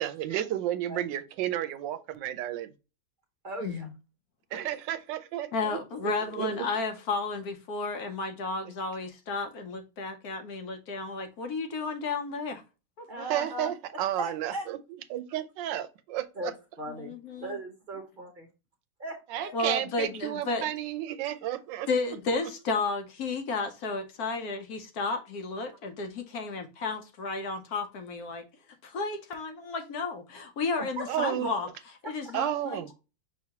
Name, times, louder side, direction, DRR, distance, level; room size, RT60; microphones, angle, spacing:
voice 1, 0.0-2.7 4.5-6.6 13.2-14.8 15.1-16.3 19.3-21.9 31.1-31.5 32.3-32.9, right 12 dB, 85° right, 1.2 m, -32 dB
voice 2, 3.4-3.9 4.5-4.8 13.1-13.7 14.1-14.7 16.4-16.5 16.8-17.1 17.4-18.5 19.0-19.5 30.8-31.3 32.0-32.3, right 1 dB, 40° right, 0.7 m, -38 dB
voice 3, 5.5-12.6 13.0-13.1 16.9-17.6 19.5-20.7 21.9-28.4 28.8-31.7 32.0-32.9, left 3 dB, 65° left, 1.1 m, -32 dB
5.8 x 3.1 x 2.8 m
omnidirectional pair, 1.9 m